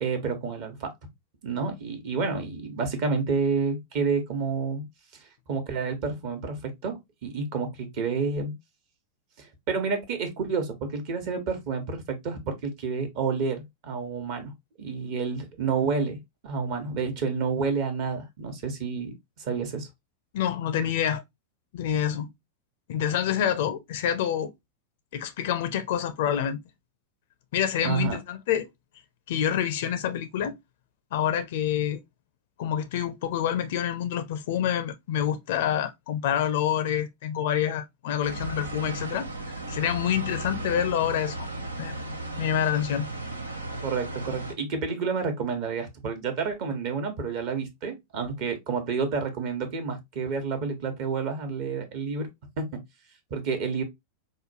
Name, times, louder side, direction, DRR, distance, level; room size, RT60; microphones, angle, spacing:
voice 1, 0.0-0.9 1.4-4.8 5.5-8.5 9.4-14.5 14.8-16.2 16.4-19.9 27.8-28.2 43.8-52.3 52.6-52.7 53.3-53.8, right 5 dB, 45° right, 1.0 m, -29 dB
voice 2, 20.3-21.2 21.7-22.3 22.9-24.5 25.1-26.6 27.5-28.7 29.3-30.6 31.1-32.0 32.6-39.3 39.7-41.5 41.8-42.0 42.4-43.1, left 9 dB, 55° left, 0.5 m, -27 dB
sound 1, 38.2-44.5, right 2 dB, 80° right, 0.6 m, -35 dB
4.8 x 2.2 x 2.7 m
figure-of-eight pair, 90°, 0 cm